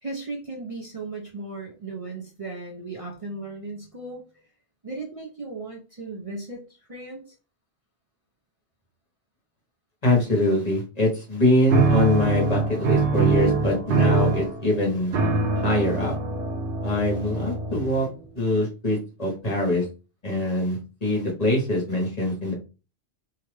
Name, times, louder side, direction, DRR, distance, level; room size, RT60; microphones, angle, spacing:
voice 1, 0.0-4.2 4.8-6.6 6.9-7.2, right 3 dB, 35° right, -2 dB, 0.7 m, -36 dB
voice 2, 10.0-15.2 15.6-16.1 16.8-18.1 18.3-19.9 20.2-22.5, left 1 dB, 35° left, -2 dB, 1.2 m, -23 dB
sound 1, 11.7-18.2, right 3 dB, 80° right, 1.0 m, -23 dB
2.9 x 2.4 x 3.2 m, 0.31 s
omnidirectional pair, 1.1 m